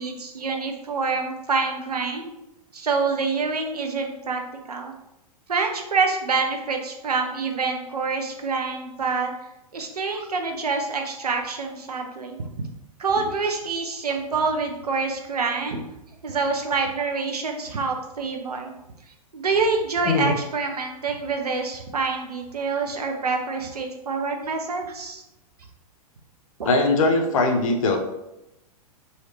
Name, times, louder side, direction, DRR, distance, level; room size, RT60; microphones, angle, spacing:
voice 1, 0.0-2.3 2.7-4.4 4.7-4.9 5.5-9.3 9.7-12.4 13.0-15.8 16.2-18.7 19.3-25.2 26.6-26.7, right 4 dB, 80° right, 3 dB, 0.6 m, -26 dB
voice 2, 26.6-28.0, left 3 dB, 60° left, 3 dB, 0.7 m, -20 dB
3.1 x 2.7 x 3.1 m, 0.90 s
figure-of-eight pair, 100°, 20 cm